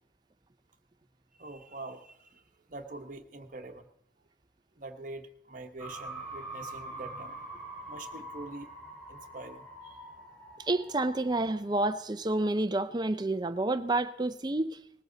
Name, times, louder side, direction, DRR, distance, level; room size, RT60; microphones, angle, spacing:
voice 1, 1.3-3.9 4.8-8.7 9.1-10.1, right 2 dB, 45° right, 1.2 m, -45 dB
sound 1, 5.8-12.3, right 2 dB, 5° left, 7.2 m, -45 dB
voice 2, 10.7-14.8, right 2 dB, 25° right, 0.6 m, -29 dB
20.0 x 14.0 x 4.0 m
head